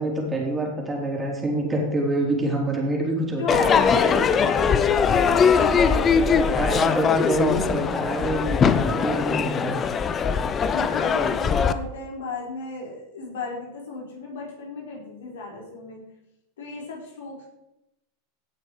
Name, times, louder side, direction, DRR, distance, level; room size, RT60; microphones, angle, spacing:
voice 1, 0.0-3.7 6.5-9.8, right 1 dB, 15° right, -1 dB, 4.0 m, -26 dB
voice 2, 3.4-7.4 10.7-16.0 16.6-17.5, left 3 dB, 70° left, -2 dB, 4.5 m, -35 dB
Crowd / Fireworks, 3.5-11.7, left 6 dB, 30° left, 0.8 m, -21 dB
16.5 x 6.4 x 4.9 m, 0.87 s
hypercardioid pair, 90°, 0 cm